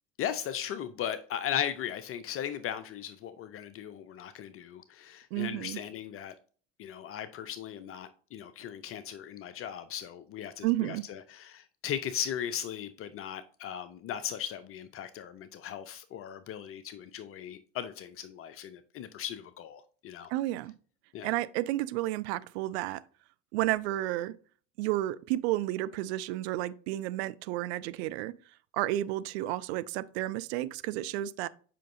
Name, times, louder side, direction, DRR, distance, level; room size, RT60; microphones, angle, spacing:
voice 1, 0.2-6.3 6.8-20.3 21.1-21.4, left 9 dB, 35° left, 0.5 m, -37 dB
voice 2, 5.3-5.8 10.6-11.0 20.3-20.7 21.2-23.0 23.5-24.3 24.8-28.4 28.7-31.5, right 15 dB, 60° right, 0.5 m, -31 dB
7.5 x 5.1 x 2.6 m
figure-of-eight pair, 65°, 37 cm